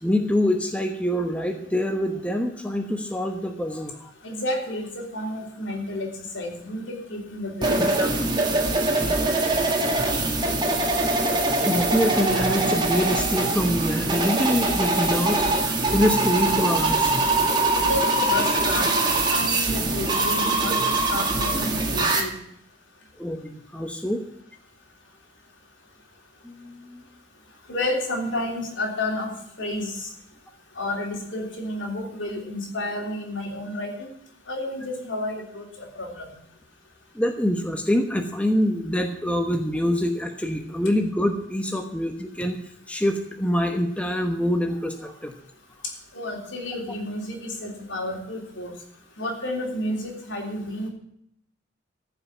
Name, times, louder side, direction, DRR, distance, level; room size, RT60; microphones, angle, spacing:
voice 1, 0.0-4.1 11.6-17.2 23.2-24.2 26.4-27.0 37.1-42.6 42.9-45.3, equal, 5° left, 3 dB, 1.0 m, -25 dB
voice 2, 4.2-6.1 6.3-8.1 17.8-22.3 27.7-29.3 29.6-30.1 30.8-34.1 34.5-36.3 46.1-48.7 49.2-50.9, left 1 dB, 70° left, 1 dB, 3.5 m, -31 dB
sound 1, 7.6-22.2, right 2 dB, 20° right, 1.8 m, -23 dB
14.5 x 5.8 x 8.7 m, 0.73 s
head